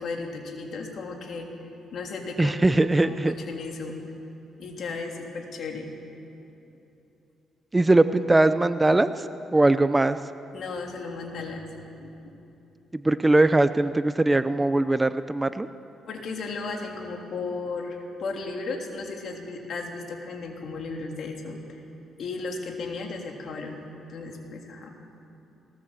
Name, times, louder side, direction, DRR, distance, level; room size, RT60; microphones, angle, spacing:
voice 1, 0.0-1.5 1.9-4.0 4.6-5.9 10.5-12.5 16.1-21.8 22.2-23.8 24.1-24.9, left 3 dB, 60° left, 1 dB, 3.2 m, -35 dB
voice 2, 2.4-3.3 7.7-9.1 9.5-10.2 12.9-15.7, right 2 dB, 15° right, 12 dB, 0.6 m, -21 dB
19.5 x 19.0 x 7.4 m, 2.9 s
cardioid pair, 90°, 0 cm